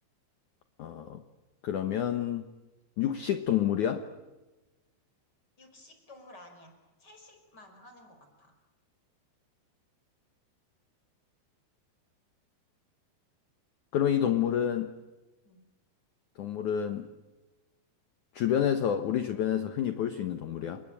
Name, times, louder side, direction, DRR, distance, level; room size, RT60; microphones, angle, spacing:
voice 1, 0.8-1.2 1.6-2.4 3.0-4.1 13.9-14.9 16.4-17.1 18.3-20.8, left 9 dB, 70° left, 8 dB, 1.8 m, -28 dB
voice 2, 5.6-8.6 15.4-15.6, left 1 dB, 20° left, 5 dB, 5.3 m, -54 dB
30.0 x 20.5 x 8.9 m, 1.1 s
omnidirectional pair, 5.3 m